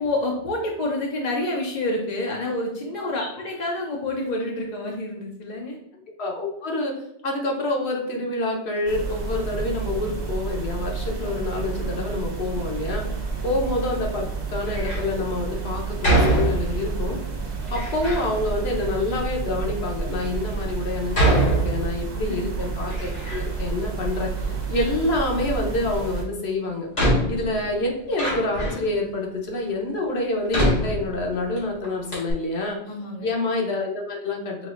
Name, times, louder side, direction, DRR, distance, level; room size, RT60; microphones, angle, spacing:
voice 1, 0.0-5.8 13.4-13.5 22.1-22.4 32.9-33.3, left 2 dB, 50° left, -1 dB, 0.6 m, -28 dB
voice 2, 6.2-17.2 17.7-26.9 27.3-32.8 33.2-34.7, left 2 dB, 65° left, 0 dB, 1.1 m, -27 dB
sound 1, 8.9-26.2, right 5 dB, 70° right, 1.1 m, -30 dB
Door, 14.6-15.1 16.0-17.0 17.7-18.3 19.1-19.2 19.9-20.0 21.1-22.3 22.6-23.7 24.0-24.8 26.2-26.3 26.9-28.9 29.6-29.7 30.5-31.6 31.8-31.9 32.1-32.3, right 1 dB, 90° left, 2.1 m, -24 dB
6.1 x 2.6 x 2.4 m, 0.75 s
omnidirectional pair, 1.2 m